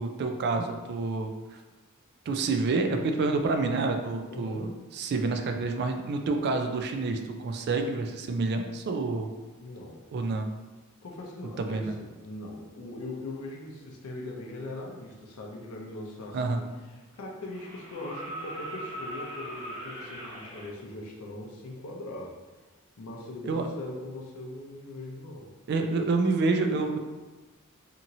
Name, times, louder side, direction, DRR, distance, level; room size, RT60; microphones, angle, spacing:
voice 1, 0.0-1.6 2.3-9.3 10.1-10.5 11.6-11.9 16.3-16.6 23.4-23.7 25.7-27.0, right 3 dB, 50° right, 5 dB, 0.3 m, -28 dB
voice 2, 4.3-4.8 9.6-10.1 11.0-16.7 16.9-22.4 23.0-25.5, left 2 dB, 80° left, -1 dB, 0.5 m, -40 dB
sound 1, 17.5-20.7 22.5-22.6, right 1 dB, 25° right, 1.0 m, -40 dB
2.9 x 2.7 x 2.6 m, 1.2 s
head